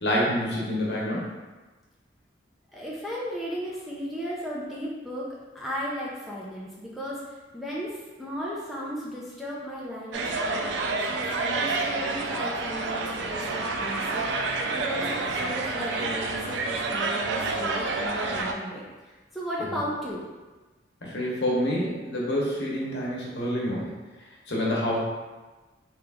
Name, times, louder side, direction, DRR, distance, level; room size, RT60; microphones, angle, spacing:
voice 1, 0.0-1.3 21.0-23.9 24.5-25.0, equal, 65° left, -5 dB, 0.9 m, -27 dB
voice 2, 2.7-7.2 7.5-20.3, equal, ahead, -7 dB, 0.5 m, -35 dB
sound 1, 10.1-18.5, right 3 dB, 80° right, 0.4 m, -29 dB
3.0 x 2.4 x 3.4 m, 1.2 s
head